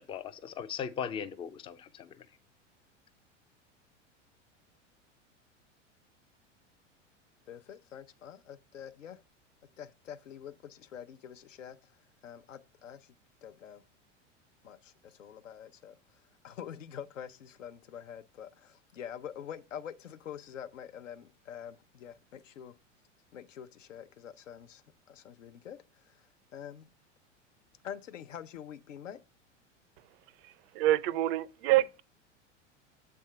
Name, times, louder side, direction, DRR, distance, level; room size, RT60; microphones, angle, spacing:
voice 1, 0.0-2.3, left 7 dB, 15° left, 0.3 m, -38 dB
voice 2, 7.5-9.2 9.8-11.9 12.2-13.1 13.4-13.8 14.6-22.7 23.3-26.3 26.5-26.9 27.8-29.2, left 9 dB, 80° left, 0.7 m, -46 dB
voice 3, 30.4-32.0, right 15 dB, 50° right, 0.5 m, -27 dB
7.6 x 3.5 x 4.4 m
hypercardioid pair, 90°, 37 cm